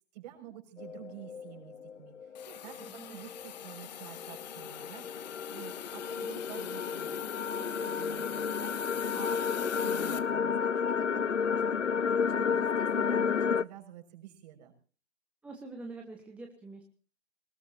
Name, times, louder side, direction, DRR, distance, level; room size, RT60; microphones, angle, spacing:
voice 1, 0.1-7.2 7.6-8.8 9.1-11.6 12.2-14.7, right 12 dB, 35° right, 4 dB, 6.0 m, -49 dB
sound 1, 0.8-13.6, left 6 dB, 85° left, 0.6 m, -32 dB
Hiss, 2.3-10.2, left 11 dB, 35° left, 1.5 m, -44 dB
voice 2, 2.8-3.2 8.0-8.5 11.0-11.3 15.4-16.8, right 3 dB, 5° right, 2 dB, 1.3 m, -46 dB
23.5 x 20.0 x 2.8 m, 0.40 s
figure-of-eight pair, 130°, 35 cm